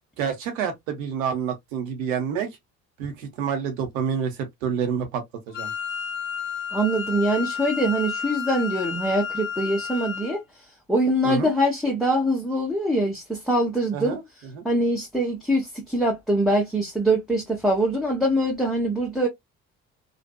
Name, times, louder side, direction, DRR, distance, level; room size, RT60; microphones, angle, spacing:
voice 1, 0.2-2.5 3.0-5.7 11.2-11.5 13.9-14.2 14.5-14.6, right 7 dB, 65° right, 0.9 m, -28 dB
Wind instrument woodwind instrument, 5.5-10.4, left 7 dB, 65° left, 0.6 m, -31 dB
voice 2, 6.7-10.4 10.9-14.2 14.6-19.3, right 1 dB, ahead, 0.7 m, -23 dB
2.6 x 2.4 x 2.2 m
figure-of-eight pair, 50°, 42 cm